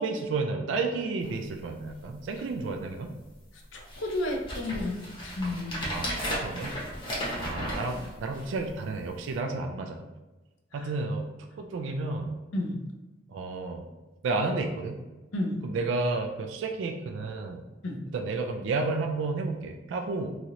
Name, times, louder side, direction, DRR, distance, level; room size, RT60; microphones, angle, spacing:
voice 1, 0.0-3.1 5.9-6.7 7.3-10.0 10.7-11.3 11.6-12.4 13.3-13.9 14.2-15.0 15.6-17.6 18.1-20.4, right 3 dB, 75° right, 4 dB, 0.3 m, -31 dB
sound 1, 1.2-1.4 1.9-2.0 2.2-2.7 3.3-3.4 3.9-8.7 9.3-9.4, equal, 25° left, 0.8 m, -35 dB
voice 2, 3.7-6.0 7.6-7.7 10.7-10.9 12.5-12.9 15.3-15.7 17.8-18.1, left 1 dB, 90° left, 2 dB, 0.6 m, -32 dB
3.0 x 2.8 x 2.5 m, 1.1 s
head